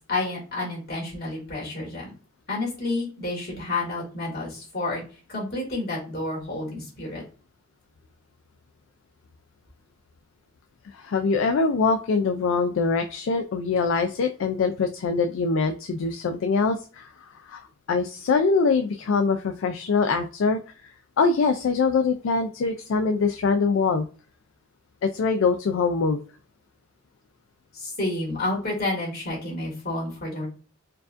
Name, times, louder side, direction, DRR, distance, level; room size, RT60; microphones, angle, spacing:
voice 1, 0.1-2.1 2.5-5.0 5.3-7.2 27.7-30.5, left 2 dB, 50° left, -4 dB, 1.9 m, -30 dB
voice 2, 10.9-17.6 17.9-20.6 21.2-24.0 25.0-26.2, left 4 dB, 70° left, 6 dB, 0.3 m, -23 dB
4.5 x 2.5 x 2.4 m, 0.36 s
head